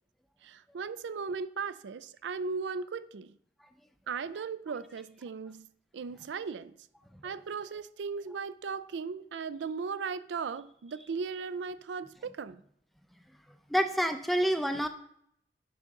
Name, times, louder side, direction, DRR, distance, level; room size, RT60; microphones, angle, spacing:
voice 1, 0.4-3.3 4.1-5.7 5.9-6.7 7.2-12.6, right 5 dB, 85° right, 0.4 m, -37 dB
voice 2, 13.7-14.9, equal, ahead, 0.4 m, -27 dB
8.5 x 3.8 x 5.9 m
head